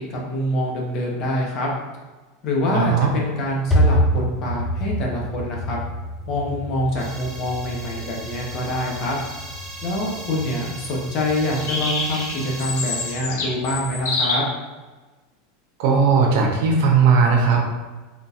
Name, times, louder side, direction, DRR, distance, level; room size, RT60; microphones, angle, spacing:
voice 1, 0.0-1.7 2.4-5.8 6.3-9.2 9.8-14.4, left 1 dB, 45° left, -2 dB, 0.9 m, -25 dB
voice 2, 2.7-3.1 15.8-17.7, right 5 dB, 70° right, 0 dB, 0.7 m, -17 dB
sound 1, 2.8-14.2, equal, 5° left, 0.6 m, -28 dB
sound 2, 7.0-13.1, right 1 dB, 20° right, 1.3 m, -38 dB
sound 3, 11.6-14.3, left 3 dB, 75° left, 0.8 m, -27 dB
3.6 x 2.6 x 2.4 m, 1.2 s
supercardioid pair, 115°, 0 cm